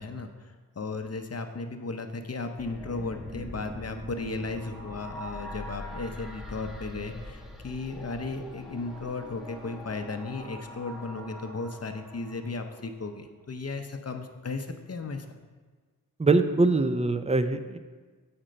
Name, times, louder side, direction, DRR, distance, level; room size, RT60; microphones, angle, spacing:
voice 1, 0.0-15.4, left 3 dB, 45° left, 7 dB, 0.7 m, -35 dB
sound 1, 2.6-13.0, equal, ahead, 1.1 m, -43 dB
voice 2, 16.2-17.8, right 3 dB, 20° right, 10 dB, 0.5 m, -23 dB
7.6 x 4.4 x 5.1 m, 1.4 s
cardioid pair, 45°, 35 cm